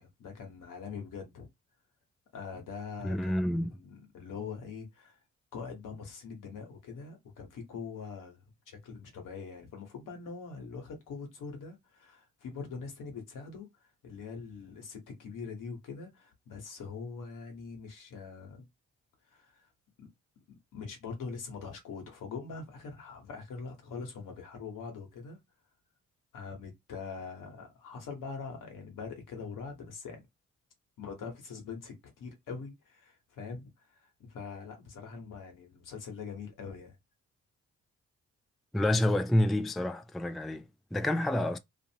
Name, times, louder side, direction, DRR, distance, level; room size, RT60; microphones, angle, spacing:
voice 1, 0.0-1.5 2.3-5.2 5.5-13.7 14.0-18.7 19.3-19.7 20.0-20.1 20.5-25.4 26.3-30.2 31.0-37.0, left 5 dB, 75° left, 1.2 m, -43 dB
voice 2, 3.0-3.7 38.7-41.6, left 1 dB, ahead, 0.3 m, -28 dB
2.6 x 2.5 x 2.8 m
hypercardioid pair, 45°, 32 cm